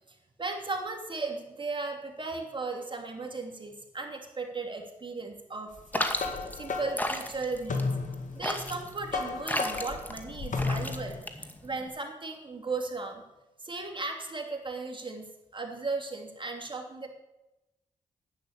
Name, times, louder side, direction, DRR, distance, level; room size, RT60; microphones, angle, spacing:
voice 1, 0.1-7.8 8.3-13.2 13.6-15.3 15.5-17.1, right 3 dB, 35° right, 2 dB, 2.9 m, -36 dB
sound 1, 5.8-11.2, left 3 dB, 55° left, 2.1 m, -34 dB
sound 2, 5.9-11.9, left 1 dB, 10° left, 2.0 m, -34 dB
11.0 x 9.2 x 6.8 m, 0.97 s
supercardioid pair, 45°, 15 cm